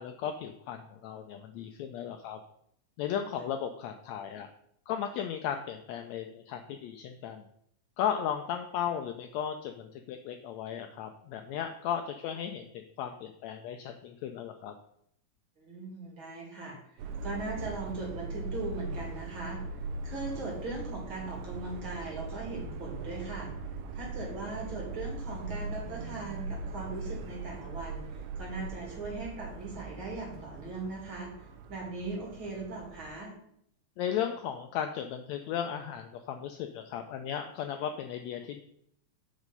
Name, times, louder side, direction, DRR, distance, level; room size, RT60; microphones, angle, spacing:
voice 1, 0.0-2.4 3.0-4.5 4.9-7.5 8.0-14.8 34.0-38.6, left 9 dB, 80° left, 6 dB, 1.6 m, -35 dB
voice 2, 15.6-16.8 17.2-19.6 20.0-23.5 23.9-31.3 31.7-33.3, right 3 dB, 45° right, -2 dB, 2.7 m, -39 dB
Subway metro underground, 17.0-33.1, right 3 dB, 75° right, 1.9 m, -40 dB
8.0 x 5.5 x 5.3 m, 0.72 s
omnidirectional pair, 3.6 m